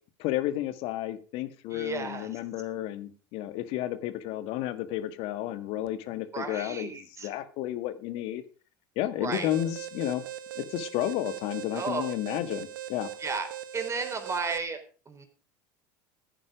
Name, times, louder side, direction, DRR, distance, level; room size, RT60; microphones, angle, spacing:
voice 1, 0.2-8.4 8.9-10.2 10.5-13.1, left 13 dB, 60° left, 12 dB, 1.7 m, -32 dB
voice 2, 1.7-2.3 6.3-7.3 9.2-9.5 11.7-12.1 13.2-13.5 13.7-15.2, right 4 dB, 25° right, 7 dB, 4.0 m, -33 dB
Alarm, 9.3-14.6, right 11 dB, 85° right, 0.9 m, -40 dB
14.5 x 9.9 x 5.1 m, 0.38 s
hypercardioid pair, 80°, 11 cm